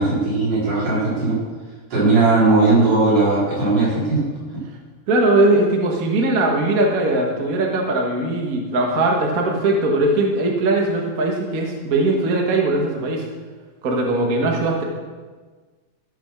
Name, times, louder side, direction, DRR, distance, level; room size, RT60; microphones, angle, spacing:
voice 1, 0.0-1.4 1.9-4.2, right 3 dB, 75° right, -8 dB, 5.6 m, -18 dB
voice 2, 5.1-13.3 13.8-14.8, right 2 dB, 45° right, 1 dB, 1.1 m, -20 dB
13.5 x 5.2 x 5.9 m, 1.4 s
omnidirectional pair, 3.7 m